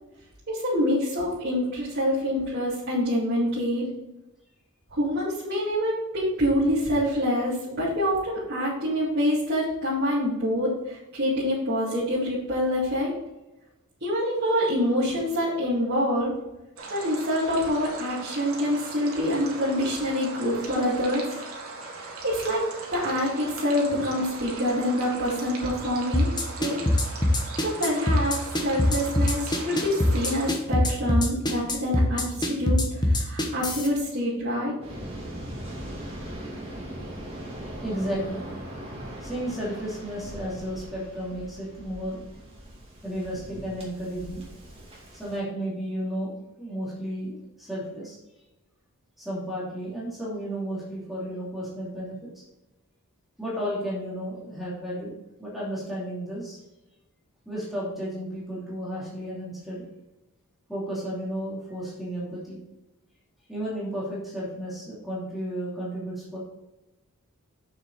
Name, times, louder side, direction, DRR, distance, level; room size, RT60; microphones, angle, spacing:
voice 1, 0.5-3.9 4.9-13.1 14.0-16.3 16.9-21.4 22.0-22.6 22.9-26.3 26.6-26.8 27.6-34.7, equal, 50° right, -10 dB, 2.6 m, -26 dB
sound 1, 16.8-30.5, right 3 dB, 80° right, 1.9 m, -39 dB
sound 2, 26.1-33.9, left 1 dB, 20° left, 1.1 m, -22 dB
Waves surf, 34.8-45.4, right 1 dB, 25° right, 2.3 m, -40 dB
voice 2, 37.8-38.4 39.2-42.2 43.0-44.5 45.1-46.3 46.6-48.2 49.2-52.3 53.4-55.1 55.4-56.6 57.5-59.9 60.7-62.6 63.5-66.4, equal, ahead, -7 dB, 2.6 m, -33 dB
7.3 x 6.5 x 4.1 m, 0.99 s
head